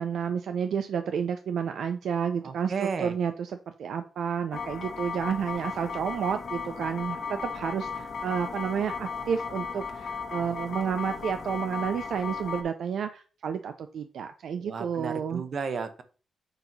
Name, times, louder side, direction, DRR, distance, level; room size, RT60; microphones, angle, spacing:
voice 1, 0.0-15.4, right 7 dB, 75° right, 8 dB, 0.5 m, -31 dB
voice 2, 2.4-3.1 14.6-16.0, right 5 dB, 50° right, 10 dB, 1.0 m, -33 dB
sound 1, 4.5-12.6, left 5 dB, 55° left, 1.4 m, -36 dB
8.1 x 2.9 x 5.4 m, 0.37 s
cardioid pair, 120°, 0 cm